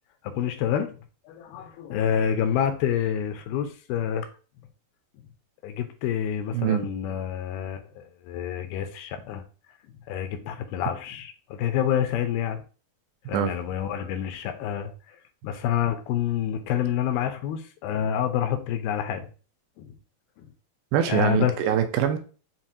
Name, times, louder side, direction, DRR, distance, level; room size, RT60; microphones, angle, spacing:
voice 1, 0.2-1.0 1.3-4.3 5.6-9.4 10.1-12.6 13.3-15.2 15.4-19.3 19.8-19.9 20.4-20.5 21.1-21.5, left 9 dB, 85° left, 2.5 m, -28 dB
voice 2, 20.9-22.2, right 10 dB, 80° right, 2.3 m, -23 dB
7.3 x 2.4 x 2.6 m
omnidirectional pair, 4.3 m